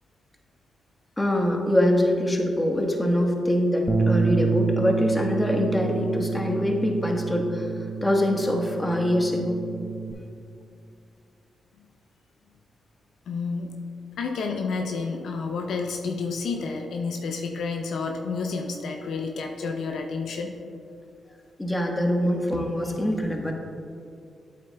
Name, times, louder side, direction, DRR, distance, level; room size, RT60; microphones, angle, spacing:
voice 1, 1.2-7.7 8.0-9.6 21.6-23.5, left 1 dB, 15° left, 1 dB, 1.2 m, -24 dB
Bass guitar, 3.9-10.1, right 4 dB, 5° right, 0.7 m, -28 dB
voice 2, 13.3-13.7 14.2-20.5, left 4 dB, 75° left, 3 dB, 0.5 m, -30 dB
8.7 x 7.4 x 2.2 m, 2.5 s
supercardioid pair, 50°, 0 cm